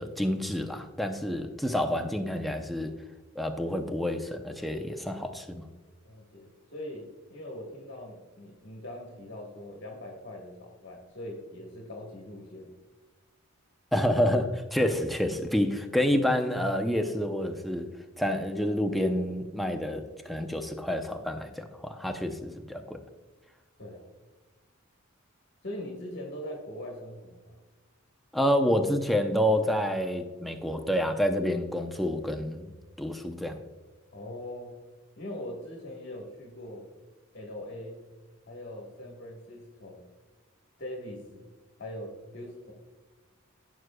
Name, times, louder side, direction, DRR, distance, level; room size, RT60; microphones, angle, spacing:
voice 1, 0.0-3.0 3.4-5.7 13.9-17.9 18.2-23.0 28.3-32.7 33.0-33.6, equal, ahead, 4 dB, 0.6 m, -28 dB
voice 2, 6.0-12.7 23.8-24.1 25.6-27.6 34.1-34.8 35.2-36.9 37.3-38.0 38.5-40.1 40.8-41.5 41.8-42.7, left 1 dB, 50° left, 0 dB, 1.3 m, -41 dB
14.0 x 6.3 x 2.2 m, 1.3 s
head